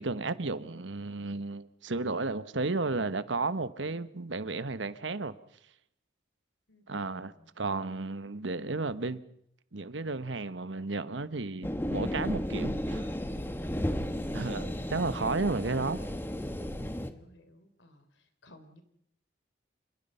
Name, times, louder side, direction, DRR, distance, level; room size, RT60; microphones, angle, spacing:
voice 1, 0.0-5.3 6.9-9.2 9.7-13.1 14.3-16.0, right 3 dB, 85° right, 1.2 m, -33 dB
voice 2, 6.7-7.5 16.8-18.1 18.4-18.8, left 1 dB, 80° left, 3.7 m, -58 dB
sound 1, 11.6-17.1, equal, 10° left, 1.4 m, -33 dB
28.0 x 22.0 x 5.6 m
head